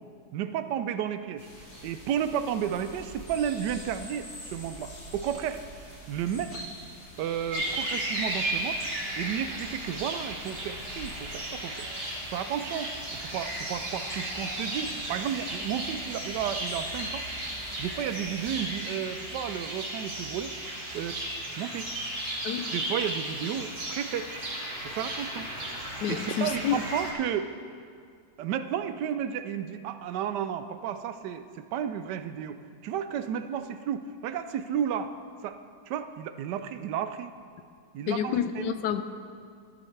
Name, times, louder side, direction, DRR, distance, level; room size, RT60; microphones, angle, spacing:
voice 1, 0.3-1.5 1.8-6.7 7.2-8.8 9.2-17.3 17.8-20.6 20.9-21.2 21.6-21.9 22.7-24.3 24.8-25.5 26.1-27.5 28.4-35.1 35.4-35.6 35.9-37.3 37.9-38.7, right 9 dB, 80° right, 11 dB, 1.2 m, -33 dB
sound 1, 1.4-18.6, equal, 55° left, 2.9 m, -46 dB
sound 2, 7.5-27.1, right 1 dB, 35° right, 1.9 m, -35 dB
voice 2, 26.0-26.8 38.1-39.0, left 9 dB, 80° left, 10 dB, 1.2 m, -29 dB
13.0 x 12.5 x 3.3 m, 2.2 s
omnidirectional pair, 1.9 m